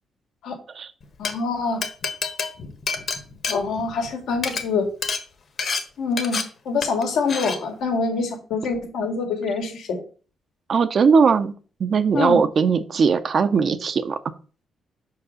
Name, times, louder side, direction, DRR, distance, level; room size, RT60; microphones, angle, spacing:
Glass, 1.0-1.3 1.8-4.1 4.4-4.6 5.0-5.2 5.6-5.8 6.2-6.4 6.8-7.0 7.3-7.6, left 5 dB, 50° left, 1.3 m, -27 dB
voice 1, 1.2-1.8 3.5-4.9 6.0-10.0 12.1-12.4, left 4 dB, 85° left, 3 dB, 2.1 m, -25 dB
voice 2, 10.7-11.5 11.8-14.2, right 5 dB, 45° right, 10 dB, 0.6 m, -19 dB
5.3 x 4.7 x 6.3 m, 0.38 s
cardioid pair, 125°, 0 cm